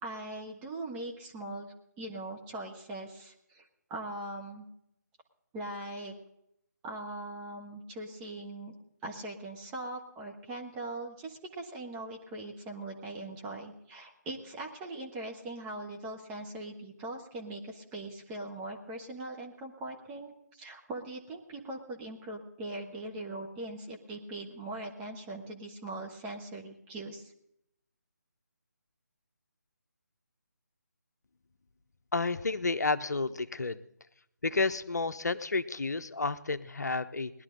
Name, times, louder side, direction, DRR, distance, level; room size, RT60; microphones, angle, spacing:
voice 1, 0.0-4.7 5.5-6.1 6.8-8.8 9.0-27.3, right 2 dB, 10° right, 0 dB, 1.1 m, -41 dB
voice 2, 32.1-33.8 34.4-37.3, left 3 dB, 65° left, 11 dB, 0.8 m, -31 dB
19.5 x 11.5 x 3.8 m, 0.78 s
figure-of-eight pair, 155°, 10 cm